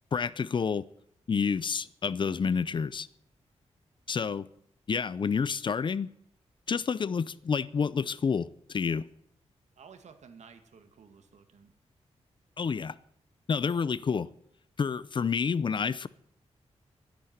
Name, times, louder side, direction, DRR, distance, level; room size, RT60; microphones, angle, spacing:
voice 1, 0.1-0.8 1.3-3.1 4.1-4.5 4.9-6.1 6.7-9.1 12.6-13.0 13.5-14.3 14.8-16.1, left 6 dB, 45° left, 0.6 m, -29 dB
voice 2, 9.8-11.7, right 6 dB, 85° right, 2.1 m, -53 dB
13.5 x 10.0 x 9.4 m
wide cardioid pair, 135°, 11 cm